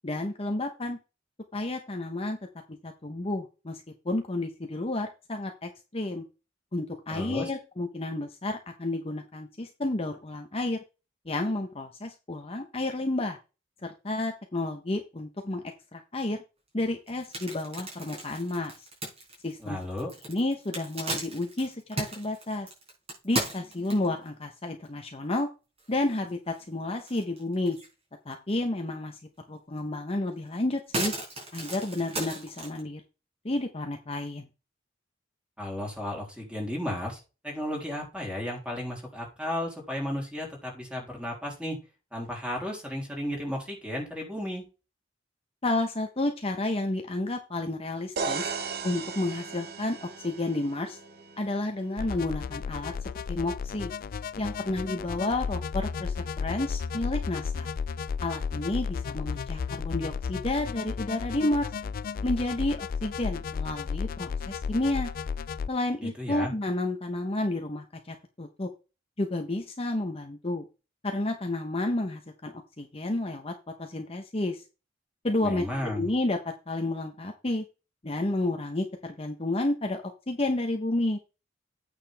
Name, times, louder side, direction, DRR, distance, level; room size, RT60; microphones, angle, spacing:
voice 1, 0.0-1.0 1.5-2.4 2.8-6.2 6.7-10.8 11.3-13.4 13.8-16.4 16.7-18.9 19.4-19.8 20.3-22.7 23.2-25.5 25.9-27.8 28.3-29.2 29.5-31.1 31.5-33.0 33.4-34.5 45.6-48.5 48.8-51.0 51.4-53.9 54.4-57.7 58.2-61.7 62.2-65.1 65.7-68.7 69.2-70.6 71.0-73.5 73.8-74.6 75.2-76.4 76.7-77.6 78.0-81.2, left 2 dB, 30° left, 4 dB, 0.9 m, -31 dB
voice 2, 7.1-7.5 19.6-20.1 35.6-41.8 42.1-44.6 66.0-66.5 75.4-76.1, left 1 dB, 5° right, -1 dB, 3.3 m, -34 dB
sound 1, 17.1-24.3 24.8-24.9 25.4-25.5 25.8-26.6 27.0-27.9 28.3-28.4 29.8-29.9 30.3-32.8, right 2 dB, 35° right, 4.8 m, -36 dB
sound 2, 48.2-52.0, right 5 dB, 55° right, 1.1 m, -36 dB
sound 3, 52.0-65.7, left 6 dB, 50° left, 0.3 m, -33 dB
8.9 x 6.8 x 3.4 m, 0.30 s
head